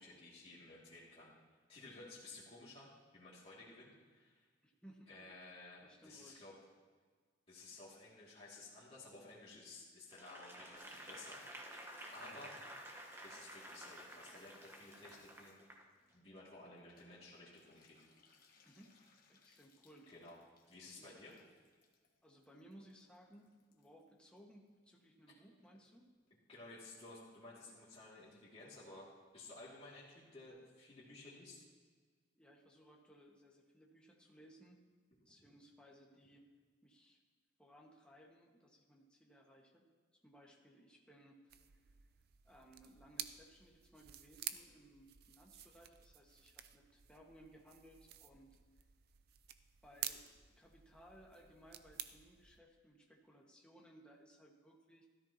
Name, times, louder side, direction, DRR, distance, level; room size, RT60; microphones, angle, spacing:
voice 1, 0.0-1.3 1.7-4.5 5.1-6.5 7.5-11.4 12.1-12.6 13.2-15.6 16.1-18.0 20.1-20.4 20.7-21.4 26.5-31.6, left 2 dB, 30° left, -8 dB, 2.5 m, -55 dB
voice 2, 4.6-5.3 5.8-6.4 18.6-18.9 19.3-20.1 20.8-21.2 22.2-26.1 32.3-34.8 35.2-36.5 36.8-37.2 37.6-39.9 40.2-41.5 42.4-48.5 49.8-55.1, right 1 dB, 5° left, -2 dB, 1.6 m, -62 dB
Applause / Crowd, 10.1-15.8 16.4-16.5, right 1 dB, 10° right, 1.2 m, -52 dB
Water tap faucet / Bathtub (filling or washing), 10.8-25.3 25.6-26.3 26.6-26.7 26.9-27.0 27.2-27.6 27.9-28.0 28.2-28.3 28.6-28.7 28.9-29.0 29.3-29.4 29.7-29.8 30.0-30.1 30.4-30.5, left 4 dB, 50° left, 1.4 m, -70 dB
sound 1, 41.5-52.6, right 11 dB, 55° right, 0.6 m, -51 dB
16.0 x 13.5 x 3.0 m, 1.5 s
head